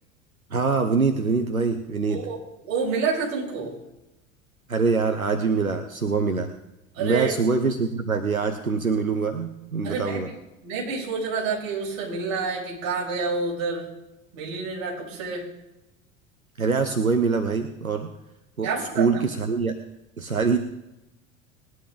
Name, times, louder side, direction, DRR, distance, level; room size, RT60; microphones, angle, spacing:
voice 1, 0.5-2.2 4.7-6.5 7.0-10.3 16.6-18.1 18.6-19.8 20.2-20.6, right 4 dB, 90° right, 7 dB, 0.8 m, -24 dB
voice 2, 2.6-3.7 6.9-7.3 9.8-10.4 10.6-13.9 14.3-15.5 18.6-19.1, right 4 dB, 45° right, -4 dB, 6.2 m, -28 dB
20.0 x 10.5 x 3.9 m, 0.92 s
figure-of-eight pair, 75°, 41 cm